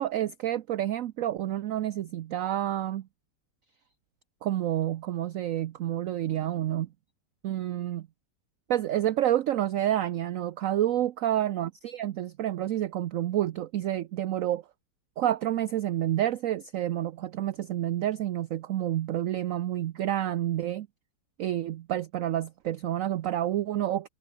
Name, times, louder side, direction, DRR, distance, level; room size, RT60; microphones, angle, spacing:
voice 1, 0.0-3.1 4.4-6.9 7.4-8.1 8.7-14.6 15.2-20.9 21.4-24.1, right 12 dB, 65° right, 0.8 m, -29 dB
omnidirectional pair, 1.9 m